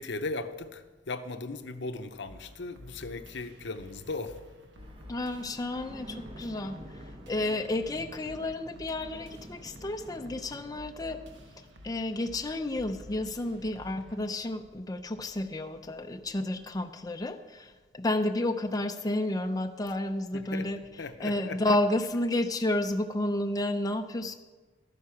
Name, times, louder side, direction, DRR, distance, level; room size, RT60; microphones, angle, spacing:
voice 1, 0.0-4.4 20.3-20.7 21.0-21.8, left 3 dB, 65° left, 9 dB, 0.8 m, -37 dB
sound 1, 2.3-14.3, left 1 dB, 75° right, 1.2 m, -52 dB
sound 2, 4.8-17.2, right 1 dB, 30° right, 1.2 m, -50 dB
voice 2, 5.1-11.2 11.8-20.8 21.2-24.4, left 1 dB, 20° left, 6 dB, 0.5 m, -31 dB
13.0 x 9.6 x 5.8 m, 1.3 s
head